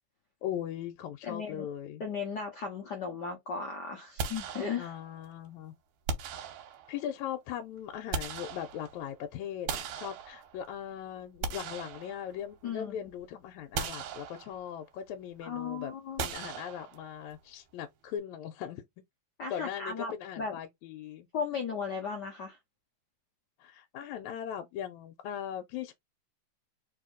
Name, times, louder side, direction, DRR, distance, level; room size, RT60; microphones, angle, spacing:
voice 1, 0.4-2.0 4.8-5.7 6.9-15.9 16.2-18.8 19.5-21.3 23.6-25.9, left 9 dB, 90° left, 2.0 m, -39 dB
voice 2, 1.2-1.7 2.0-4.9 12.6-13.1 15.4-16.3 19.4-20.6 21.3-22.6, left 5 dB, 70° left, 0.9 m, -36 dB
sound 1, 4.2-5.2 6.1-7.1 7.8-9.1 9.7-10.8 11.2-12.7 13.1-13.2 13.7-14.8 16.2-17.3, right 6 dB, 85° right, 2.3 m, -38 dB
4.7 x 2.8 x 3.8 m
omnidirectional pair, 3.3 m